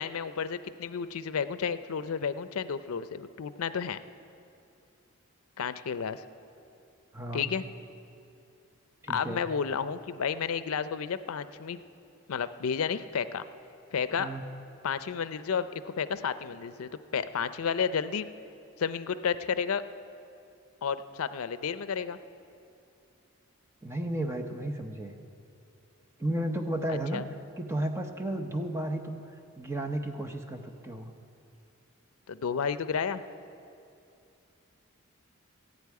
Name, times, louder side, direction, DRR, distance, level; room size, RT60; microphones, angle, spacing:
voice 1, 0.0-4.0 5.6-6.2 7.3-7.6 9.1-11.8 12.3-13.4 13.9-14.3 14.8-18.3 18.8-19.8 20.8-22.2 27.1-27.2 32.3-33.2, left 6 dB, 85° left, 13 dB, 0.5 m, -31 dB
voice 2, 7.1-7.5 9.0-9.4 14.2-14.4 23.8-25.1 26.2-27.2 27.6-29.2 29.6-31.1, right 1 dB, 10° right, 4 dB, 0.8 m, -33 dB
14.0 x 8.3 x 9.4 m, 2.6 s
head